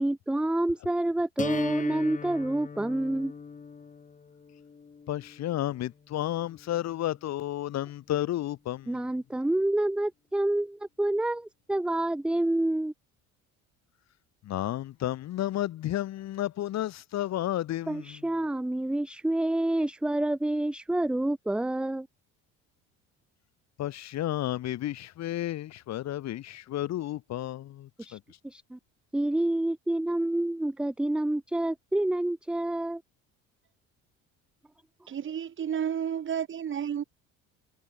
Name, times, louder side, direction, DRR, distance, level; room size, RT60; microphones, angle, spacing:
voice 1, 0.0-3.3 8.9-12.9 17.9-22.1 28.0-28.2 28.4-28.8 29.1-33.0, right 1 dB, 5° right, 0.4 m, -28 dB
sound 1, 1.4-7.4, left 5 dB, 25° left, 2.0 m, -40 dB
voice 2, 5.1-8.9 14.5-18.2 23.8-28.2, left 13 dB, 55° left, 1.9 m, -32 dB
voice 3, 35.1-37.0, right 8 dB, 40° right, 2.3 m, -31 dB
cardioid pair, 115°, 31 cm